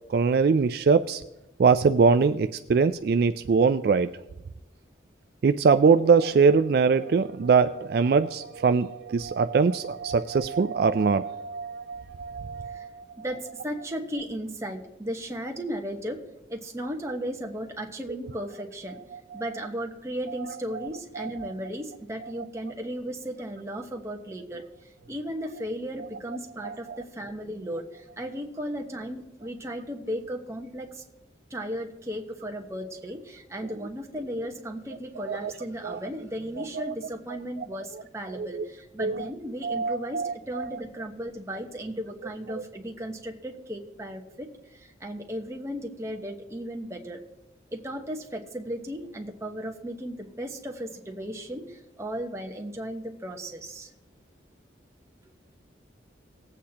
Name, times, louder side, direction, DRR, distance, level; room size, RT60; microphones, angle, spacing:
voice 1, 0.1-1.2 1.6-4.1 5.4-13.1 19.3-19.4 21.1-21.5 22.2-22.3 26.6-27.0 35.3-35.5 35.8-36.0 36.7-36.9 38.3-38.6 39.0-39.3 39.6-40.7, right 5 dB, 55° right, 10 dB, 0.3 m, -23 dB
voice 2, 13.2-16.2 16.5-19.0 19.3-31.0 31.5-47.2 47.7-53.9, equal, 15° right, 2 dB, 1.0 m, -35 dB
19.0 x 8.3 x 2.9 m, 0.95 s
head